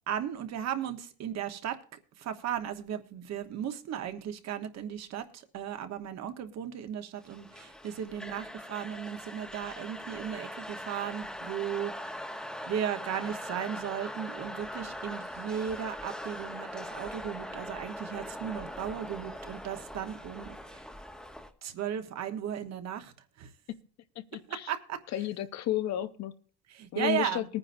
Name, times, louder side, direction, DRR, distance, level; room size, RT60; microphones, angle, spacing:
voice 1, 0.1-1.8 2.2-11.9 12.6-20.8 21.6-23.5 24.5-25.0 26.7-27.5, right 9 dB, 45° right, 8 dB, 1.2 m, -36 dB
sound 1, 7.2-21.5, equal, ahead, 1.0 m, -41 dB
voice 2, 24.3-24.7 25.1-26.3 26.9-27.4, left 13 dB, 45° left, 12 dB, 0.7 m, -32 dB
20.0 x 9.8 x 2.6 m, 0.42 s
cardioid pair, 155°, 38 cm